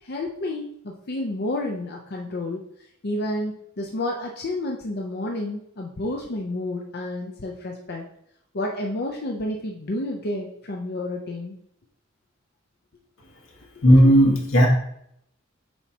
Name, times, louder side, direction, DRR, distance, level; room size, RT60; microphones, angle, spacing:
voice 1, 0.0-2.6 3.0-8.1 8.5-11.6, left 1 dB, 55° left, 0 dB, 0.6 m, -30 dB
voice 2, 13.8-14.7, equal, 85° left, 0 dB, 1.5 m, -14 dB
7.0 x 4.7 x 2.9 m, 0.71 s
head